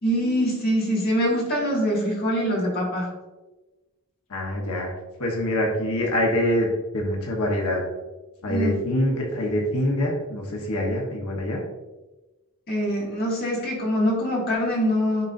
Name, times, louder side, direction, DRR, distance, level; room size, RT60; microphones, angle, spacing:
voice 1, 0.0-3.1 8.5-8.7 12.7-15.2, equal, 45° left, -4 dB, 2.1 m, -24 dB
voice 2, 4.3-4.9 5.2-7.8 8.4-11.6, left 1 dB, 80° left, 0 dB, 1.1 m, -25 dB
9.7 x 3.9 x 2.6 m, 1.1 s
head